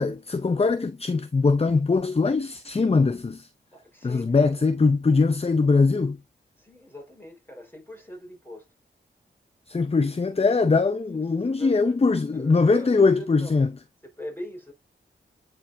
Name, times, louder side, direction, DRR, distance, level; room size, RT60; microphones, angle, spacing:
voice 1, 0.0-3.5 4.0-6.2 9.7-13.7, left 4 dB, 30° left, 0.6 m, -22 dB
voice 2, 3.7-4.6 6.6-8.7 10.0-10.1 10.9-12.0 12.3-13.5 14.0-14.7, left 1 dB, 10° left, 4.5 m, -42 dB
8.9 x 4.6 x 2.7 m
cardioid pair, 55°, 20 cm